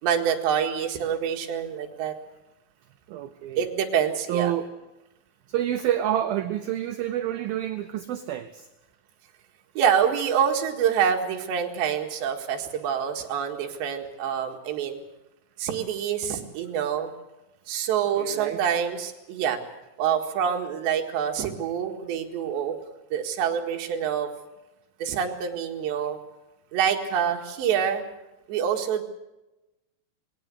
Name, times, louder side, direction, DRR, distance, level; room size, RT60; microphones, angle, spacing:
voice 1, 0.0-2.2 3.6-4.5 9.8-15.0 15.6-17.1 17.7-19.6 20.0-22.8 23.1-24.3 25.0-26.2 26.7-28.0 28.5-29.0, right 8 dB, 70° right, 3 dB, 4.0 m, -26 dB
voice 2, 3.1-3.7 4.3-4.7 5.5-8.7 18.2-18.6, right 11 dB, 90° right, 9 dB, 2.0 m, -28 dB
21.0 x 17.5 x 8.2 m, 0.99 s
omnidirectional pair, 5.4 m